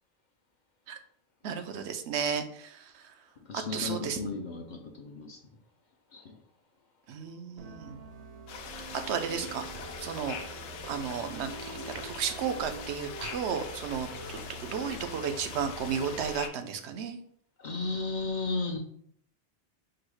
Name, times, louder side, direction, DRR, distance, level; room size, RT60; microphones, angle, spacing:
voice 1, 1.4-3.1 3.5-4.3 7.1-8.0 8.9-9.7 10.0-10.4 10.9-17.2, right 7 dB, 80° right, 7 dB, 0.9 m, -34 dB
voice 2, 3.5-5.4 6.1-6.4 17.6-18.8, left 3 dB, 55° left, 2 dB, 0.6 m, -34 dB
sound 1, 7.6-16.3, right 3 dB, 55° right, 0.4 m, -45 dB
sound 2, 8.5-16.5, left 6 dB, 80° left, 0.9 m, -42 dB
4.8 x 2.0 x 4.6 m, 0.66 s
omnidirectional pair, 1.1 m